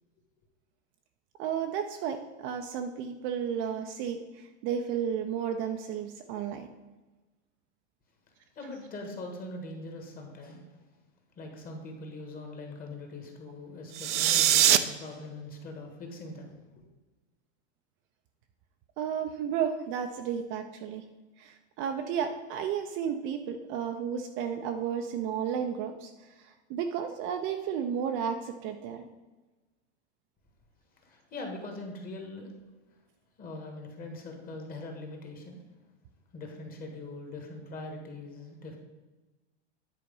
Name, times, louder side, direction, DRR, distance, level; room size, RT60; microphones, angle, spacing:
voice 1, 1.4-6.7 19.0-21.0 21.4-29.0, right 8 dB, 35° right, 5 dB, 0.5 m, -33 dB
voice 2, 8.5-10.6 11.4-16.8 31.0-32.5 33.4-35.6 36.3-38.8, left 2 dB, 25° left, 2 dB, 1.6 m, -42 dB
sound 1, 13.9-14.8, right 12 dB, 85° right, 0.7 m, -22 dB
9.7 x 4.3 x 5.4 m, 1.2 s
supercardioid pair, 145°, 35 cm